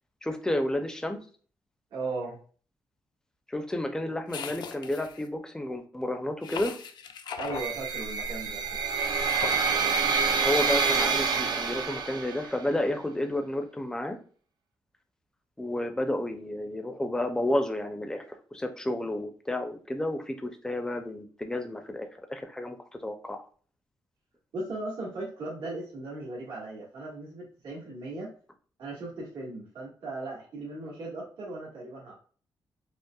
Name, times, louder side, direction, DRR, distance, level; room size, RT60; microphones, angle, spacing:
voice 1, 0.2-1.2 3.5-6.7 10.4-14.2 15.6-22.8 23.0-23.5, left 1 dB, 10° left, 6 dB, 0.4 m, -31 dB
voice 2, 1.9-2.4 7.3-8.8 24.5-28.3 28.8-32.1, right 2 dB, 90° right, -6 dB, 1.6 m, -37 dB
sound 1, 4.3-5.3 6.4-7.7 9.0-10.0, left 7 dB, 70° left, 0.4 m, -39 dB
sound 2, 7.5-12.6, right 5 dB, 65° right, 0.4 m, -27 dB
5.3 x 2.0 x 2.3 m, 0.42 s
wide cardioid pair, 150°, 8 cm